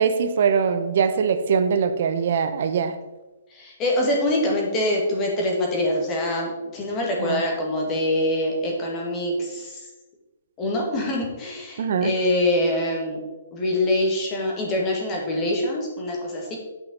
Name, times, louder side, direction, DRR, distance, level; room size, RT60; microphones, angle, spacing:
voice 1, 0.0-2.9 7.2-7.4 11.8-12.1, right 6 dB, 55° right, 10 dB, 0.8 m, -22 dB
voice 2, 3.5-9.8 10.6-13.2 13.5-16.6, left 1 dB, 20° left, -1 dB, 1.8 m, -24 dB
10.0 x 5.5 x 3.9 m, 1.1 s
hypercardioid pair, 160°, 0 cm